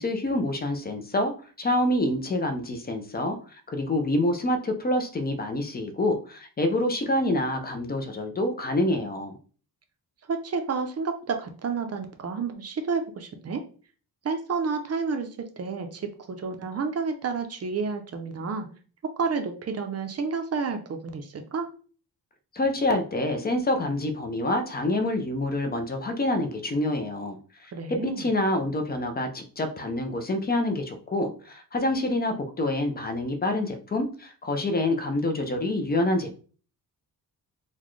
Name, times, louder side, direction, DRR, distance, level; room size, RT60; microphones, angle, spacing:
voice 1, 0.0-1.3 1.6-9.3 22.5-27.7 28.0-36.4, left 1 dB, 25° left, 5 dB, 0.4 m, -27 dB
voice 2, 10.3-13.6 14.2-18.7 19.2-21.7 27.7-28.3, right 5 dB, 40° right, 5 dB, 0.5 m, -30 dB
4.0 x 2.2 x 3.1 m, 0.40 s
wide cardioid pair, 160°, 38 cm